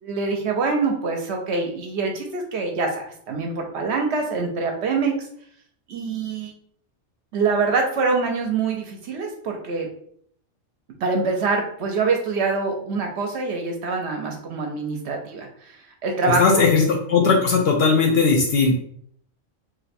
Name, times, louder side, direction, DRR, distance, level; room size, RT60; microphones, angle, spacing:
voice 1, 0.0-5.1 5.9-6.5 7.3-9.9 11.0-15.8 16.0-16.7, right 4 dB, 65° right, 2 dB, 0.8 m, -25 dB
voice 2, 16.3-18.7, left 4 dB, 65° left, 1 dB, 0.7 m, -18 dB
2.6 x 2.2 x 4.1 m, 0.64 s
omnidirectional pair, 1.4 m